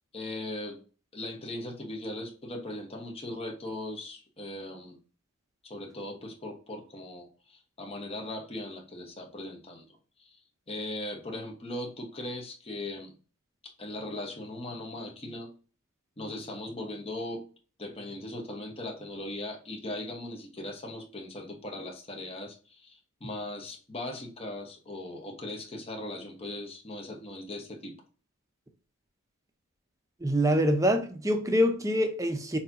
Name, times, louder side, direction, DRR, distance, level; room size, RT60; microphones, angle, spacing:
voice 1, 0.1-0.8 1.1-5.0 5.6-9.8 10.2-10.4 10.7-13.1 13.8-15.5 16.2-17.4 17.8-28.0, left 1 dB, 25° left, 1.1 m, -39 dB
voice 2, 30.2-32.6, equal, 15° right, 0.7 m, -25 dB
6.6 x 2.9 x 2.6 m
head